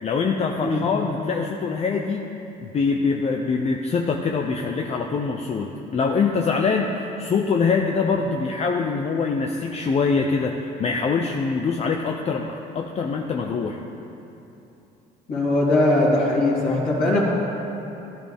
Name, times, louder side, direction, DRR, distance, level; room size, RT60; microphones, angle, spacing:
voice 1, 0.0-2.3 2.6-13.8, left 5 dB, 40° left, 2 dB, 0.7 m, -24 dB
voice 2, 15.3-17.2, left 2 dB, 60° left, -8 dB, 3.2 m, -20 dB
15.0 x 11.0 x 3.6 m, 2.9 s
cardioid pair, 110°, 17 cm